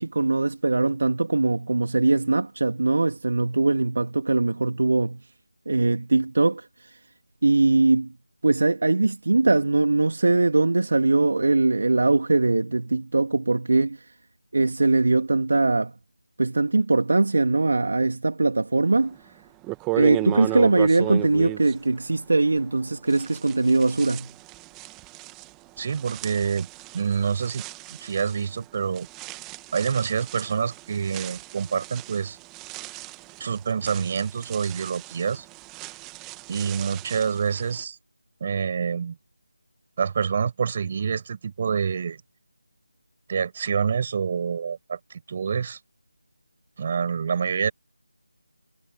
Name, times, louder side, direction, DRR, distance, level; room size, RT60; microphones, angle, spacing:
voice 1, 0.0-5.2 5.7-7.0 7.4-8.1 8.4-14.1 14.5-15.9 16.4-19.2 19.9-24.3, right 3 dB, 60° right, 2.3 m, -21 dB
sound 1, 19.1-19.2 19.6-22.8 23.1-37.8, right 23 dB, 10° right, 1.6 m, -36 dB
voice 2, 25.8-26.7 26.9-27.6 28.0-29.1 29.7-32.4 33.4-35.4 36.5-38.0 38.4-39.2 40.0-42.2 43.3-45.8 46.8-47.7, right 6 dB, 30° right, 5.9 m, -27 dB
figure-of-eight pair, 165°, 0 cm